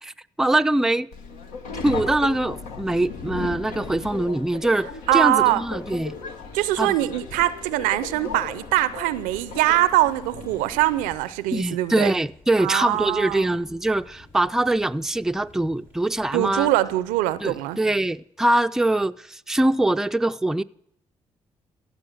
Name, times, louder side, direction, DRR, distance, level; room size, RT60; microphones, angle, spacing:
voice 1, 0.0-1.1 1.8-6.2 6.8-7.0 11.5-16.7 17.4-20.6, right 1 dB, 5° right, 0.4 m, -23 dB
Subway metro underground, 1.1-11.2, left 4 dB, 80° left, 1.0 m, -36 dB
Fire, 4.7-18.1, left 2 dB, 60° left, 3.2 m, -53 dB
voice 2, 5.1-5.6 6.5-12.1 12.6-13.6 16.3-17.8, right 15 dB, 85° right, 0.5 m, -22 dB
15.5 x 7.3 x 6.3 m
hypercardioid pair, 45°, 14 cm